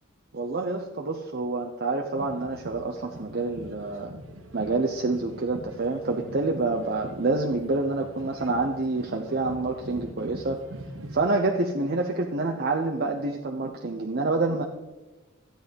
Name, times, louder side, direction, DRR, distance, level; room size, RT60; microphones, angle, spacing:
voice 1, 0.3-4.1 4.5-10.6 11.1-14.6, right 3 dB, 50° right, 2 dB, 0.8 m, -27 dB
sound 1, 2.1-11.4, right 1 dB, 65° right, 1.4 m, -43 dB
13.0 x 9.0 x 5.3 m, 1.1 s
head